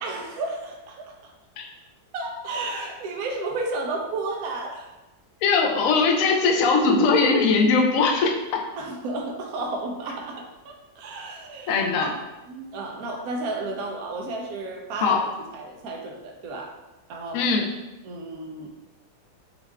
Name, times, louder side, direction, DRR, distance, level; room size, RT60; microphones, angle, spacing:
voice 1, 0.0-1.3 2.1-4.9 8.8-12.2 12.5-15.2 15.5-16.7 17.1-17.4 18.0-18.7, right 2 dB, 75° right, 1 dB, 0.8 m, -32 dB
voice 2, 5.4-8.6 11.7-12.1 15.0-15.2 17.3-17.6, left 4 dB, 65° left, 1 dB, 0.8 m, -20 dB
5.3 x 2.3 x 3.5 m, 1.0 s
omnidirectional pair, 2.1 m